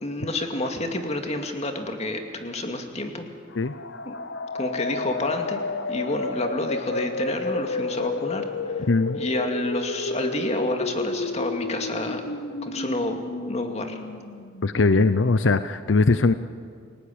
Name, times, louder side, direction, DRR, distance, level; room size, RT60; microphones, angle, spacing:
voice 1, 0.0-3.3 4.0-4.2 4.5-5.6 5.9-8.8 9.1-12.3 12.6-13.2 13.5-14.0, left 2 dB, 35° left, 4 dB, 2.4 m, -29 dB
sound 1, 3.5-15.2, left 3 dB, 65° left, 1.0 m, -31 dB
voice 2, 8.9-9.2 14.6-16.3, left 3 dB, 85° left, 12 dB, 0.7 m, -20 dB
29.0 x 18.5 x 8.8 m, 2.2 s
head